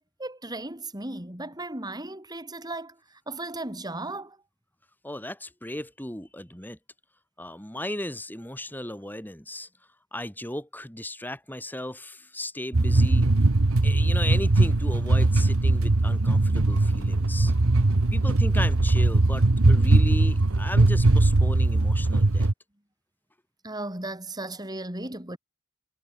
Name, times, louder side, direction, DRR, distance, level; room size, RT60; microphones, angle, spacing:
voice 1, 0.0-3.0 3.3-4.4 23.6-25.4, right 2 dB, 20° right, 4.6 m, -36 dB
voice 2, 5.0-6.8 7.4-9.7 10.1-13.3 13.8-17.5 18.1-22.5, left 1 dB, 10° left, 3.9 m, -36 dB
sound 1, 12.7-22.5, right 2 dB, 80° right, 1.1 m, -20 dB
head